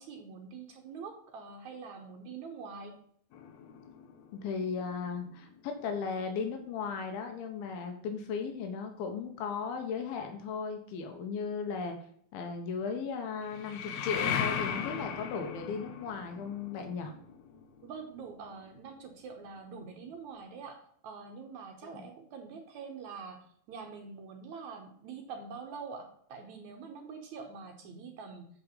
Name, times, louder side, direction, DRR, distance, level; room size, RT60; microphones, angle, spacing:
voice 1, 0.0-3.0 17.8-28.5, right 5 dB, 65° right, 3 dB, 2.1 m, -45 dB
sound 1, 3.3-6.0 13.4-19.1, left 7 dB, 70° left, 1.8 m, -38 dB
voice 2, 4.4-12.0 12.3-17.1 21.8-22.1, left 5 dB, 85° left, 4 dB, 2.8 m, -36 dB
8.4 x 4.7 x 5.4 m, 0.64 s
omnidirectional pair, 4.2 m